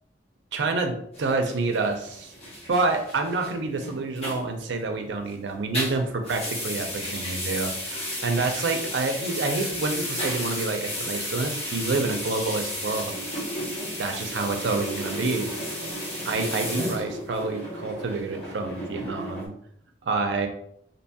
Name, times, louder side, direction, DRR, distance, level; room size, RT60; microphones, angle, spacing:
voice 1, 0.5-2.3 2.7-13.2 14.0-15.5 16.2-19.5 20.0-20.5, right 3 dB, 75° right, 5 dB, 0.5 m, -28 dB
sound 1, 1.1-5.3 5.6-19.5, equal, 35° left, 0.8 m, -33 dB
2.7 x 2.7 x 2.2 m, 0.70 s
head